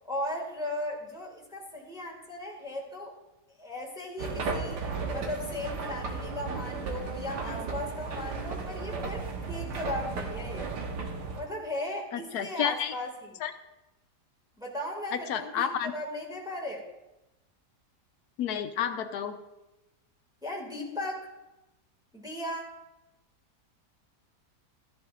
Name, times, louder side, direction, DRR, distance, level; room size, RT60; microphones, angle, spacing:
voice 1, 0.0-3.1 3.6-4.8 5.1-10.7 11.4-13.4 14.6-16.9 20.4-21.3 22.1-22.7, left 1 dB, ahead, -2 dB, 1.9 m, -37 dB
sound 1, 4.2-11.4, right 4 dB, 90° right, 1.7 m, -35 dB
voice 2, 12.1-12.9 13.4-13.5 15.1-15.9 18.4-19.4, left 9 dB, 75° left, 9 dB, 1.2 m, -30 dB
14.0 x 10.5 x 2.5 m, 0.98 s
omnidirectional pair, 1.8 m